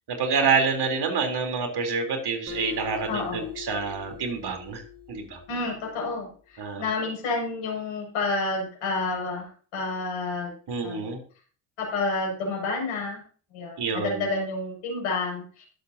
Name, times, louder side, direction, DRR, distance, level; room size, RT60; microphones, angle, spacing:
voice 1, 0.1-4.8 5.1-5.4 6.6-6.9 10.7-11.2 13.8-14.3, right 5 dB, 55° right, 4 dB, 3.7 m, -27 dB
Acoustic guitar, 2.5-5.9, left 9 dB, 30° right, 4.4 m, -41 dB
voice 2, 3.1-3.5 5.5-10.5 10.8-11.1 11.8-13.2 13.5-15.6, left 3 dB, 75° left, -1 dB, 6.6 m, -30 dB
20.5 x 8.1 x 2.8 m, 0.41 s
hypercardioid pair, 55°, 48 cm